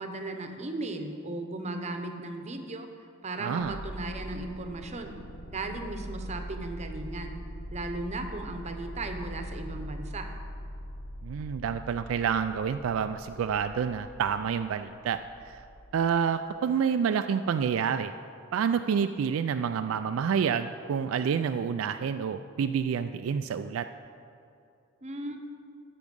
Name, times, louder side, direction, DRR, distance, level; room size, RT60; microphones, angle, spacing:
voice 1, 0.0-2.9 3.2-5.2 5.5-7.4 7.7-10.3 25.0-25.4, right 2 dB, 35° right, 5 dB, 0.9 m, -36 dB
voice 2, 3.4-3.8 11.2-15.6 15.9-18.1 18.5-23.9, right 7 dB, 70° right, 9 dB, 0.3 m, -28 dB
sound 1, 3.6-16.3, equal, 85° left, 1.0 m, -42 dB
13.0 x 6.1 x 5.3 m, 2.6 s
head